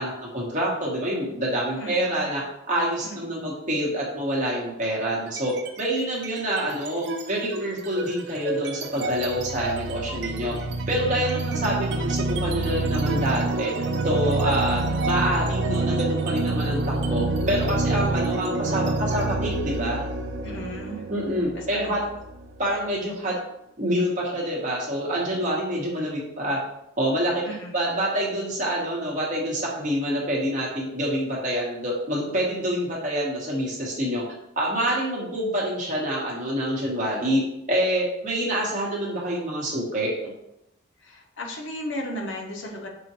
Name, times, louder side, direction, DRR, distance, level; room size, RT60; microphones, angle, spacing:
voice 1, 0.0-2.4 2.7-10.5 10.9-13.7 14.0-16.8 17.1-20.1 21.1-22.0 22.6-23.3 23.8-26.6 27.0-27.4 27.7-34.2 34.6-37.4 37.7-40.3, equal, 40° right, -4 dB, 1.0 m, -26 dB
voice 2, 1.8-2.3 3.0-3.5 20.4-21.0 21.6-21.8 27.4-27.9 41.0-42.9, equal, 70° left, 1 dB, 0.7 m, -35 dB
sound 1, 5.3-5.8 6.2-22.8, right 2 dB, 60° right, 0.3 m, -28 dB
5.5 x 2.1 x 2.8 m, 0.82 s
head